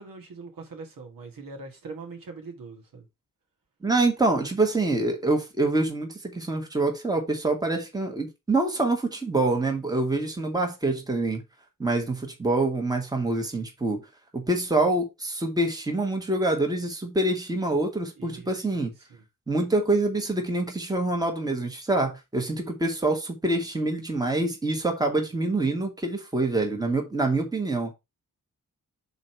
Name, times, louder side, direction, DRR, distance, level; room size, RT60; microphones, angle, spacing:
voice 1, 0.0-3.1 18.2-19.2, right 4 dB, 85° right, 2.0 m, -42 dB
voice 2, 3.8-11.4 11.8-14.0 14.3-18.9 19.5-27.9, right 2 dB, 10° right, 1.4 m, -26 dB
6.2 x 4.0 x 4.4 m
wide cardioid pair, 150°, 33 cm